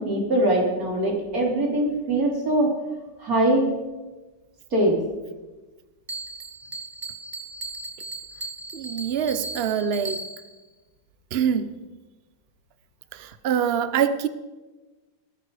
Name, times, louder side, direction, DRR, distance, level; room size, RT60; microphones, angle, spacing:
voice 1, 0.0-2.7 3.2-3.7 4.7-5.0, right 1 dB, 45° right, -1 dB, 4.1 m, -22 dB
Bell, 6.1-10.6, right 3 dB, 30° right, 0.7 m, -37 dB
voice 2, 8.7-10.2 11.3-11.7 13.1-14.3, right 8 dB, 85° right, 12 dB, 0.5 m, -25 dB
18.5 x 14.0 x 4.9 m, 1.2 s
omnidirectional pair, 2.2 m